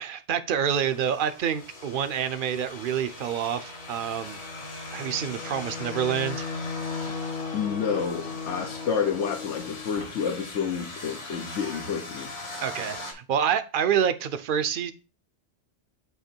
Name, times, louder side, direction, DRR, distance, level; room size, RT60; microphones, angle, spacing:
voice 1, 0.0-4.4 4.9-6.5 12.6-14.9, right 8 dB, 55° right, 11 dB, 0.7 m, -27 dB
sound 1, 0.7-13.1, left 4 dB, 65° left, 1.7 m, -37 dB
voice 2, 7.5-12.3, left 7 dB, 90° left, 1 dB, 1.3 m, -29 dB
8.1 x 3.0 x 4.4 m, 0.33 s
omnidirectional pair, 1.2 m